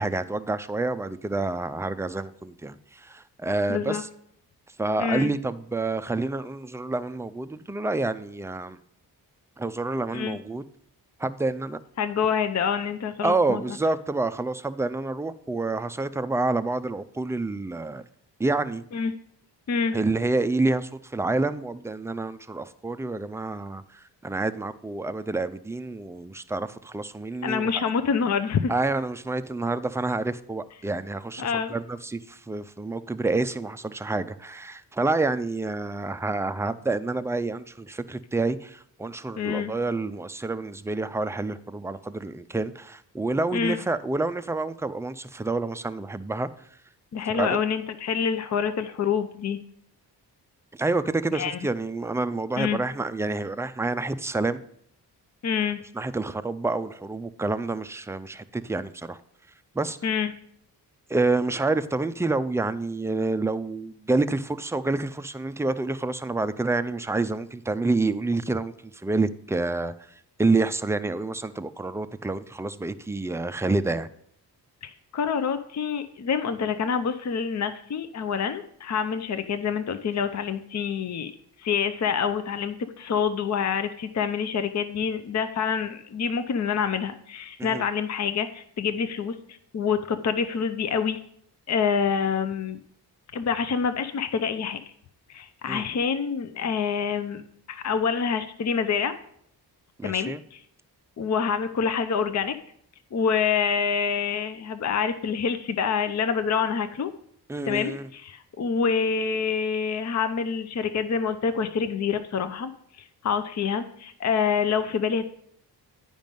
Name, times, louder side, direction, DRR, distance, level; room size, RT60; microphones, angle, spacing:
voice 1, 0.0-4.1 4.8-8.8 9.6-10.6 11.2-11.8 13.2-18.0 18.4-18.8 19.9-27.9 28.7-46.5 47.3-47.6 50.7-54.6 55.9-59.2 59.7-60.0 61.1-70.1 70.4-74.1 87.6-87.8 95.7-95.8 100.0-100.4 107.5-108.1, right 3 dB, 5° right, 0.3 m, -28 dB
voice 2, 3.7-4.0 5.0-5.3 10.1-10.4 12.0-13.6 18.9-19.1 19.7-20.0 27.4-28.7 31.4-31.7 39.4-39.7 43.5-43.8 47.1-49.6 51.3-51.6 52.6-52.8 55.4-55.8 60.0-60.3 74.8-81.3 81.6-91.2 91.7-92.8 93.3-94.8 95.3-97.4 97.7-99.2 100.0-100.6 101.2-102.5 103.1-107.1 107.7-112.7 113.2-115.3, left 6 dB, 40° left, 0.6 m, -26 dB
9.0 x 5.2 x 5.3 m
cardioid pair, 65°, 41 cm